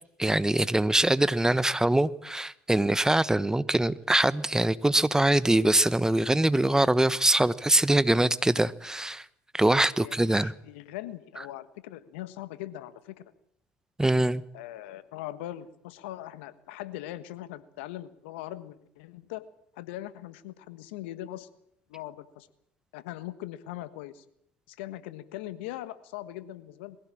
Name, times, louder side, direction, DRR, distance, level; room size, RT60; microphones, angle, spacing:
voice 1, 0.2-9.2 9.5-10.5 14.0-14.4, right 1 dB, 10° right, 18 dB, 1.0 m, -23 dB
voice 2, 10.0-13.1 14.5-19.4 19.7-21.5 21.9-22.5 22.9-24.2 24.7-27.0, left 14 dB, 80° left, 14 dB, 1.4 m, -40 dB
22.5 x 16.0 x 8.7 m, 0.70 s
hypercardioid pair, 65°, 6 cm